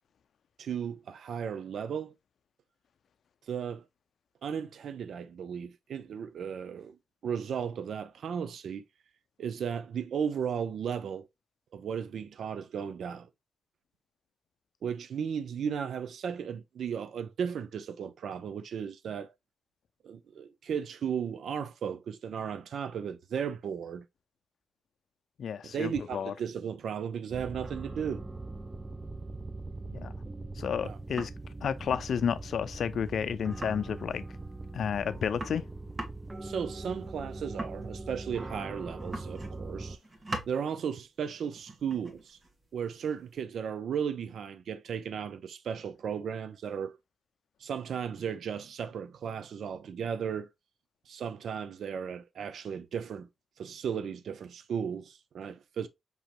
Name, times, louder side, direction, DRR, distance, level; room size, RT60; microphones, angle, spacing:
voice 1, 0.6-2.1 3.5-3.8 4.4-7.0 7.2-8.8 9.4-11.3 11.7-13.3 14.8-19.3 20.0-24.1 25.6-28.2 30.8-31.0 36.4-40.0 40.5-42.4 42.7-47.0 47.6-50.5 51.1-53.3 53.6-55.9, right 7 dB, 75° right, 0.5 m, -35 dB
voice 2, 25.4-26.3 29.9-30.1 30.6-31.3 31.6-34.2 34.7-35.7, left 7 dB, 75° left, 0.4 m, -31 dB
sound 1, 27.3-40.0, right 2 dB, 20° right, 0.5 m, -41 dB
sound 2, 30.8-31.5 31.9-32.1 32.4-32.5 32.7-32.8 33.0-33.2 33.5-34.3 34.8-34.9 35.1-38.6 39.0-39.7 39.9-40.6 41.5-43.4, right 1 dB, 35° right, 1.3 m, -42 dB
5.5 x 2.9 x 3.0 m
cardioid pair, 85°, 0 cm